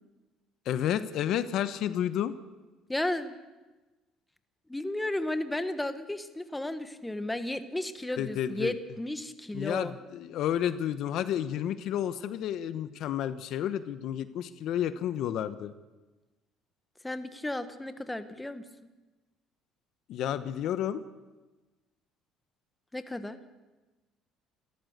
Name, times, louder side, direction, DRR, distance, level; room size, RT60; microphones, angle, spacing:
voice 1, 0.6-2.3 8.2-8.7 9.5-15.7 20.1-21.0, left 10 dB, 65° left, 12 dB, 1.0 m, -31 dB
voice 2, 2.9-3.4 4.7-9.9 17.0-18.6 22.9-23.4, left 1 dB, 10° left, 10 dB, 1.4 m, -33 dB
29.5 x 14.0 x 6.7 m, 1.2 s
cardioid pair, 105°, 0 cm